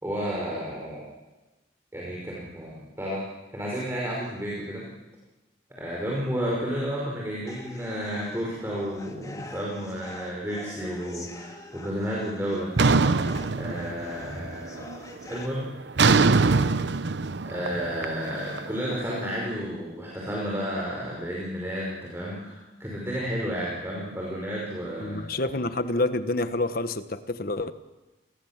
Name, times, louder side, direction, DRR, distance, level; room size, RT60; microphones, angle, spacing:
voice 1, 0.0-1.1 1.9-3.2 3.5-4.8 5.7-12.7 13.5-14.9 15.3-15.7 17.4-25.2, equal, 15° right, -4 dB, 5.5 m, -32 dB
sound 1, 7.5-15.5, left 2 dB, 20° left, 2.7 m, -45 dB
sound 2, 12.8-14.3 14.6-15.1 16.0-19.0, right 4 dB, 80° right, 0.8 m, -22 dB
voice 2, 25.0-27.7, left 2 dB, 55° left, 10 dB, 1.4 m, -28 dB
29.0 x 20.5 x 7.5 m, 1.1 s
head